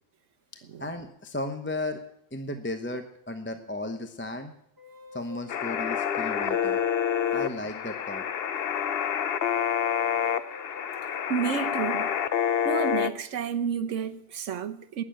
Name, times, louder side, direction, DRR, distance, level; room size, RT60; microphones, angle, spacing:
voice 1, 0.8-2.0 2.3-4.5 5.1-6.8 7.3-8.3, left 1 dB, 10° left, 0.9 m, -34 dB
Wind instrument woodwind instrument, 4.8-12.6, left 3 dB, 15° right, 1.4 m, -49 dB
sound 1, 5.5-13.1, left 8 dB, 55° left, 0.8 m, -28 dB
voice 2, 11.3-12.1 12.6-15.0, right 7 dB, 70° right, 1.3 m, -30 dB
19.0 x 7.3 x 8.9 m
omnidirectional pair, 1.3 m